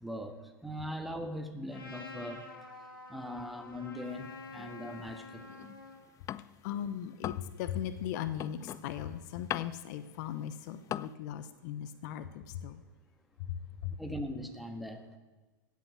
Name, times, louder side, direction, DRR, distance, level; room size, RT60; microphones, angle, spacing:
voice 1, 0.0-2.5 3.1-5.5 14.0-15.2, left 1 dB, ahead, 6 dB, 1.5 m, -40 dB
Trumpet, 1.7-6.0, left 3 dB, 85° left, 2.5 m, -48 dB
sound 1, 4.1-6.8 7.1-11.1, left 12 dB, 30° left, 0.4 m, -42 dB
voice 2, 6.6-12.8 13.4-13.6 13.8-13.9, left 10 dB, 55° left, 12 dB, 0.8 m, -38 dB
16.5 x 8.4 x 6.3 m, 1.3 s
hypercardioid pair, 95°, 11 cm